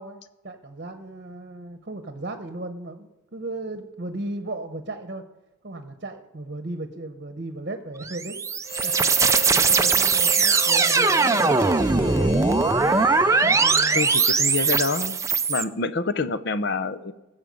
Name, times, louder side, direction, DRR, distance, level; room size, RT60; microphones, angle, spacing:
voice 1, 0.0-5.2 5.6-8.4 8.8-9.1 9.5-12.4 13.4-14.1, right 2 dB, 50° right, 7 dB, 1.0 m, -36 dB
sound 1, 8.0-15.6, right 4 dB, 15° right, 0.5 m, -20 dB
Harmonica, 8.6-14.4, right 2 dB, 80° left, 5.8 m, -36 dB
voice 2, 13.9-15.2 15.5-17.1, left 4 dB, 60° left, 13 dB, 0.7 m, -26 dB
20.0 x 7.3 x 5.3 m, 1.0 s
head